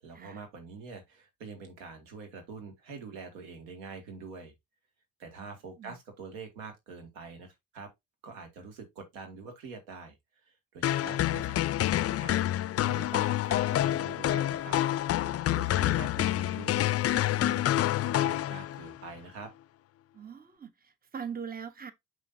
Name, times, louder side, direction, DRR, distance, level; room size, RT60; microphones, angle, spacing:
voice 1, 0.0-4.5 5.2-7.9 8.2-10.1 10.4-11.7 12.0-14.8 15.5-19.5, right 4 dB, 85° right, 2.2 m, -45 dB
sound 1, 10.8-19.0, left 13 dB, 40° left, 0.4 m, -28 dB
voice 2, 20.1-21.9, right 7 dB, 25° right, 1.0 m, -41 dB
6.1 x 5.8 x 2.7 m
hypercardioid pair, 50°, 38 cm